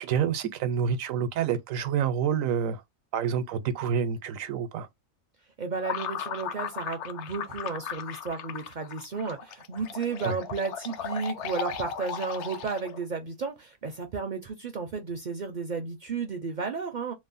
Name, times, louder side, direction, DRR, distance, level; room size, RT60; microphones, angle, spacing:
voice 1, 0.0-2.8 3.1-4.9 10.2-10.4, right 7 dB, 90° right, 1.0 m, -28 dB
voice 2, 5.6-17.1, right 4 dB, 60° right, 0.5 m, -33 dB
sound 1, 5.8-13.0, left 7 dB, 65° left, 0.8 m, -36 dB
3.0 x 2.0 x 2.5 m
omnidirectional pair, 1.4 m